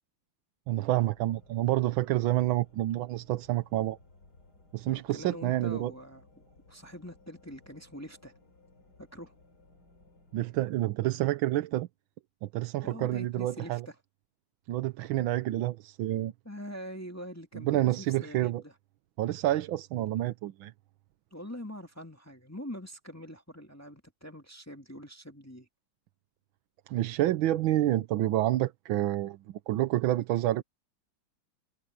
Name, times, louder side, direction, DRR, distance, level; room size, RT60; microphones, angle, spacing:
voice 1, 0.7-4.0 4.7-5.9 10.3-11.9 12.4-13.9 14.7-16.3 17.5-18.6 19.2-20.7 26.9-30.6, right 14 dB, 85° right, 1.5 m, -28 dB
sound 1, 0.9-10.6, left 2 dB, 55° left, 3.7 m, -60 dB
voice 2, 4.9-8.3 9.0-9.3 12.8-13.9 16.4-18.7 19.9-20.1 21.3-25.7, equal, 10° left, 2.2 m, -44 dB
omnidirectional pair, 2.2 m